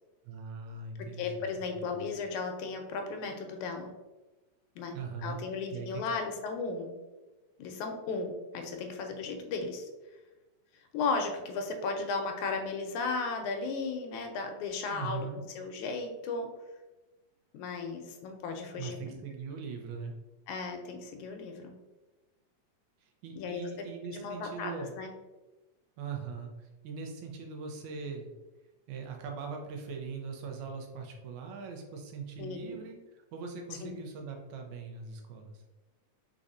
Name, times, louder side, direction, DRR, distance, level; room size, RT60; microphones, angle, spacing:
voice 1, 0.3-2.0 4.9-5.4 5.7-6.0 14.9-15.4 18.8-20.1 23.0-24.9 26.0-28.3 28.9-35.6, right 5 dB, 75° right, 2 dB, 2.0 m, -41 dB
voice 2, 1.2-3.9 4.8-5.0 5.2-6.9 7.6-9.9 10.9-15.3 15.6-16.5 17.5-19.2 20.5-21.7 23.4-23.6 24.1-25.1 32.4-32.8 33.8-33.9, left 4 dB, 85° left, 4 dB, 2.0 m, -35 dB
4.7 x 4.0 x 2.5 m, 1.2 s
omnidirectional pair, 3.5 m